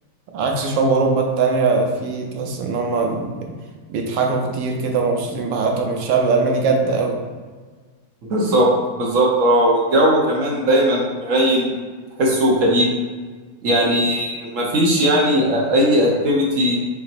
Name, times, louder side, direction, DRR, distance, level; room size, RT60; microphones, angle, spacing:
voice 1, 0.3-3.4 3.9-7.2, right 4 dB, 90° right, 2 dB, 1.4 m, -21 dB
voice 2, 8.3-11.8 12.2-12.9 13.6-16.8, equal, 55° right, -3 dB, 1.0 m, -18 dB
6.0 x 3.0 x 2.5 m, 1.4 s
omnidirectional pair, 1.9 m